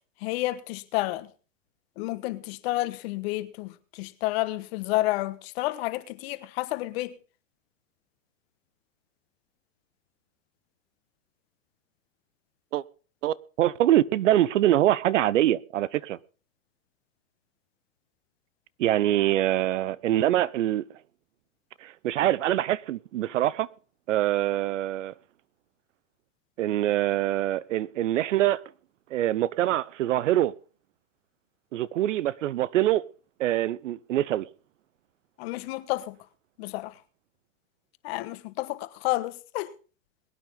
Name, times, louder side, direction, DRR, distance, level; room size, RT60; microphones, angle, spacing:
voice 1, 0.2-1.3 2.0-7.1 35.4-36.2 36.6-37.0 38.0-39.7, left 18 dB, 50° left, 1.3 m, -30 dB
voice 2, 13.2-16.2 18.8-20.8 21.8-23.7 24.1-25.1 26.6-28.6 29.1-30.5 31.7-33.0 33.4-34.5, right 13 dB, 70° right, 0.7 m, -24 dB
22.0 x 9.3 x 3.9 m
hypercardioid pair, 110°, 39 cm